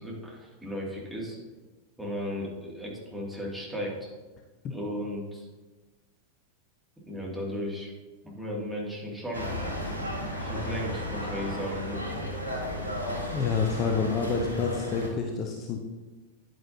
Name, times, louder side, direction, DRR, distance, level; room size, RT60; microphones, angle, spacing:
voice 1, 0.0-1.4 2.0-4.1 4.7-5.5 7.1-7.9 8.2-9.5 10.4-12.0, equal, 5° right, -5 dB, 2.8 m, -35 dB
sound 1, 9.3-15.1, equal, 85° left, 1.9 m, -34 dB
voice 2, 13.3-15.8, left 5 dB, 30° left, 3 dB, 0.8 m, -28 dB
9.8 x 9.2 x 3.0 m, 1.3 s
figure-of-eight pair, 90°, 0 cm